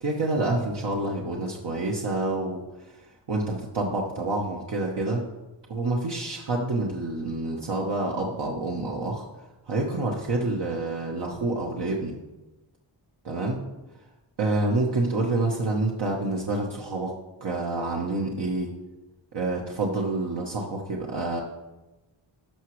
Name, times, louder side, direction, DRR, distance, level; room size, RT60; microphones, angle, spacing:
voice 1, 0.0-5.2 5.7-9.3 9.7-12.1 13.2-13.6 13.9-14.0 14.4-18.7 19.3-21.4, right 2 dB, 55° right, -2 dB, 1.1 m, -28 dB
12.0 x 5.9 x 3.1 m, 1.1 s
wide cardioid pair, 85°, 49 cm